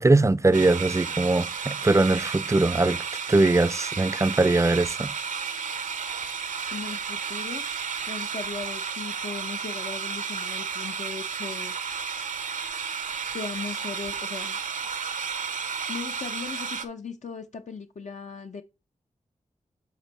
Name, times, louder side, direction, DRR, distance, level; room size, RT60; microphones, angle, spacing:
voice 1, 0.0-3.0 3.3-5.1, right 2 dB, 20° right, 0.4 m, -21 dB
sound 1, 0.5-16.9, right 6 dB, 75° right, 0.7 m, -32 dB
voice 2, 6.7-7.6 8.1-11.7 13.3-14.6 15.9-18.6, left 5 dB, 65° left, 0.6 m, -38 dB
7.3 x 4.4 x 4.0 m
cardioid pair, 55°, 13 cm